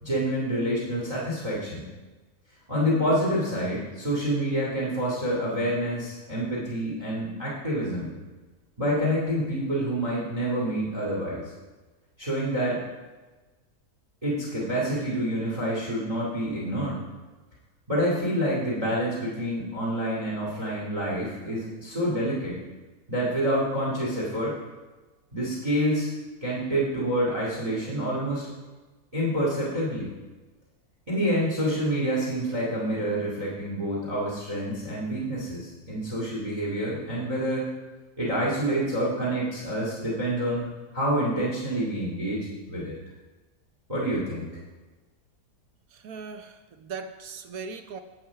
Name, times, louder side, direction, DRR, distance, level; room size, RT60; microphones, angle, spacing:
voice 1, 0.0-1.8 2.7-8.1 8.8-11.4 12.2-12.8 14.2-17.0 17.9-22.6 23.1-24.6 25.3-26.1 26.4-28.5 29.1-30.1 31.1-37.7 38.2-40.6 40.9-42.9 43.9-44.5, equal, 20° right, -3 dB, 2.3 m, -27 dB
voice 2, 45.9-48.0, right 5 dB, 70° right, 8 dB, 1.2 m, -39 dB
11.0 x 7.2 x 4.7 m, 1.3 s
omnidirectional pair, 1.6 m